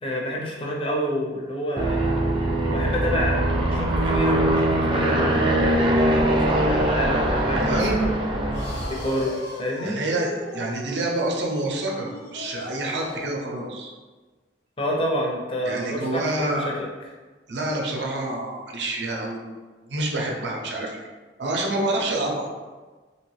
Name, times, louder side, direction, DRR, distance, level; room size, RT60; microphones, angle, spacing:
voice 1, 0.0-2.0 2.7-8.3 8.9-10.0 14.8-16.9, equal, 30° left, -1 dB, 0.5 m, -28 dB
Aircraft, 1.8-9.1, right 1 dB, 30° right, 0.4 m, -22 dB
voice 2, 7.6-8.0 9.8-13.9 15.6-16.7 17.5-19.5 19.8-21.0 21.4-22.5, right 2 dB, 75° right, 0 dB, 0.6 m, -27 dB
sound 1, 8.5-13.4, left 1 dB, 75° left, 0.9 m, -37 dB
3.1 x 2.8 x 3.1 m, 1.3 s
head